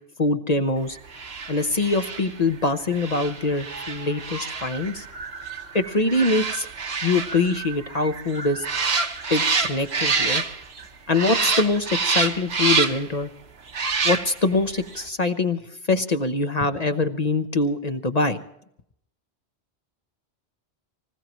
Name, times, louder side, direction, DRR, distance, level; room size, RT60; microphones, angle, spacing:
voice 1, 0.2-1.0 1.5-5.1 5.7-6.7 7.0-8.6 9.3-10.4 11.1-13.3 14.0-15.6 15.9-18.4, left 2 dB, 40° left, 7 dB, 0.9 m, -23 dB
sound 1, 1.1-10.8 11.1-13.2 13.7-14.5 14.9-15.0, right 4 dB, 70° right, 1.5 m, -27 dB
25.0 x 16.0 x 3.1 m, 0.75 s
omnidirectional pair, 1.1 m